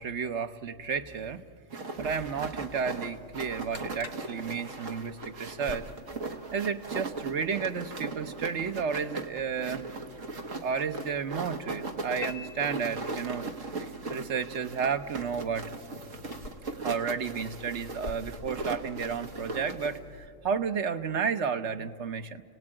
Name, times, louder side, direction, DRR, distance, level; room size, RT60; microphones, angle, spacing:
voice 1, 0.0-1.4 1.7-5.9 6.5-9.9 10.6-13.4 14.1-15.7 16.8-22.4, right 6 dB, 65° right, 9 dB, 1.2 m, -32 dB
sound 1, 1.7-20.0, right 3 dB, 90° right, 1.9 m, -38 dB
sound 2, 2.1-20.3, left 3 dB, 80° left, 2.3 m, -50 dB
sound 3, 12.2-13.7, left 7 dB, 55° left, 1.0 m, -44 dB
29.5 x 18.0 x 8.9 m, 2.3 s
omnidirectional pair, 1.3 m